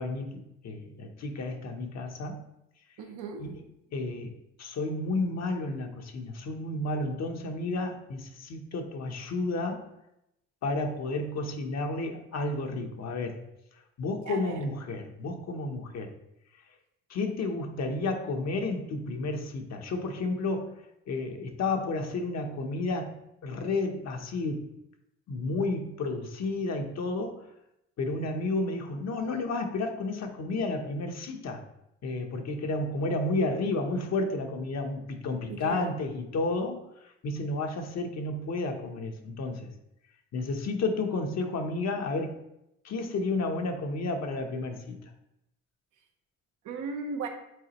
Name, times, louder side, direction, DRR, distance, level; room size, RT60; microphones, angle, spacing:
voice 1, 0.0-2.4 3.4-3.5 3.9-4.3 4.6-9.9 10.6-13.4 14.0-16.1 17.1-20.7 21.1-23.2 23.4-24.7 25.3-27.5 28.0-31.6 32.0-36.8 37.2-39.7 40.3-42.4 42.8-45.0, left 2 dB, 60° left, 4 dB, 1.0 m, -31 dB
voice 2, 3.0-3.4 14.3-14.6 35.5-35.9 46.6-47.3, right 5 dB, 85° right, 4 dB, 0.9 m, -36 dB
8.0 x 3.9 x 3.0 m, 0.84 s
cardioid pair, 90°, 30 cm